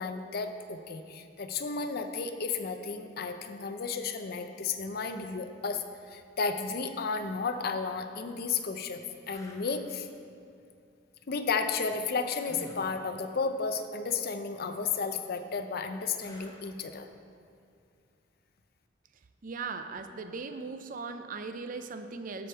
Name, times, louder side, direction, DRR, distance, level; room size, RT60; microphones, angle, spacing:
voice 1, 0.0-9.0 9.3-10.1 11.3-17.1, left 5 dB, 55° left, 8 dB, 0.5 m, -33 dB
sound 1, 9.3-9.7 12.4-12.9 16.2-16.8 19.7-19.9, equal, 15° left, 1.0 m, -51 dB
voice 2, 19.4-22.5, right 4 dB, 45° right, 9 dB, 0.5 m, -38 dB
13.0 x 5.2 x 4.4 m, 2.4 s
head